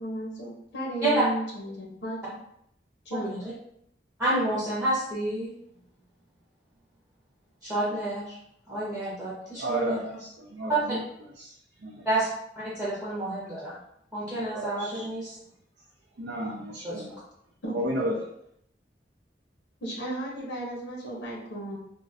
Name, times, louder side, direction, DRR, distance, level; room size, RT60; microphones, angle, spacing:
voice 1, 0.0-2.2 3.0-3.3 17.6-17.9 19.8-21.8, right 1 dB, 85° left, -3 dB, 0.8 m, -34 dB
voice 2, 3.1-3.5 4.2-5.5 7.6-8.4 8.7-10.0 10.7-10.8 12.0-12.3 12.6-13.8 14.1-15.4 16.8-17.1, right 2 dB, 5° right, -9 dB, 1.0 m, -29 dB
voice 3, 9.6-11.0 11.4-11.5 11.8-12.1 14.4-15.1 16.2-17.2 17.7-18.2, right 1 dB, 80° right, -3 dB, 0.5 m, -32 dB
3.6 x 2.1 x 2.6 m, 0.72 s
head